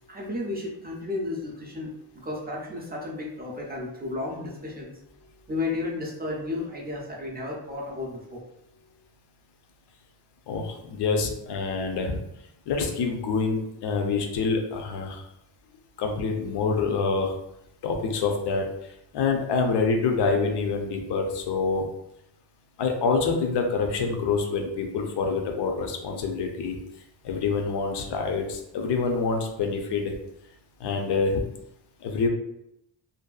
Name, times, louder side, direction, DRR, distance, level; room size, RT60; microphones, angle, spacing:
voice 1, 0.1-5.0 5.5-8.4, left 2 dB, 25° right, -3 dB, 0.4 m, -33 dB
voice 2, 10.5-12.2 12.7-15.2 16.0-17.3 17.8-18.7 19.1-21.8 22.8-26.8 27.2-30.1 30.8-31.4 32.0-32.3, left 4 dB, 65° left, 4 dB, 0.6 m, -26 dB
2.6 x 2.2 x 2.3 m, 0.80 s
wide cardioid pair, 140°, 44 cm